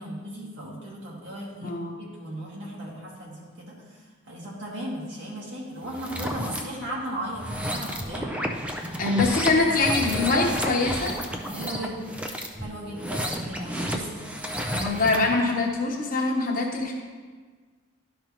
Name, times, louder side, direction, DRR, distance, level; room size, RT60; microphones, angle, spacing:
voice 1, 0.0-8.3 11.5-12.2 12.6-14.3, right 1 dB, 60° right, -4 dB, 2.0 m, -36 dB
voice 2, 1.6-2.0 9.0-11.2 14.7-16.9, left 3 dB, 45° left, -1 dB, 1.1 m, -24 dB
sound 1, 5.9-6.6 7.3-15.3, equal, 5° right, 0.5 m, -31 dB
12.0 x 5.1 x 3.0 m, 1.5 s
head